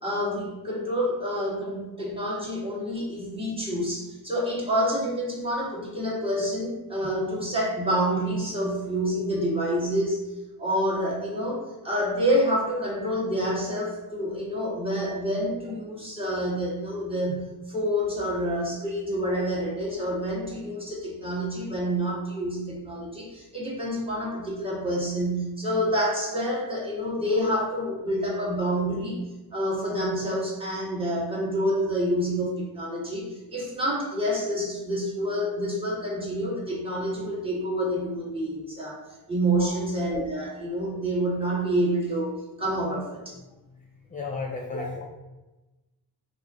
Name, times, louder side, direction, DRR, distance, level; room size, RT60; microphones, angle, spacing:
voice 1, 0.0-10.2 10.6-29.2 29.5-39.0 39.3-42.3 42.6-43.3 44.7-44.8, equal, 15° right, -5 dB, 1.2 m, -28 dB
voice 2, 44.1-45.1, left 4 dB, 20° left, 0 dB, 0.3 m, -33 dB
4.2 x 2.5 x 3.6 m, 1.1 s
cardioid pair, 115°, 40 cm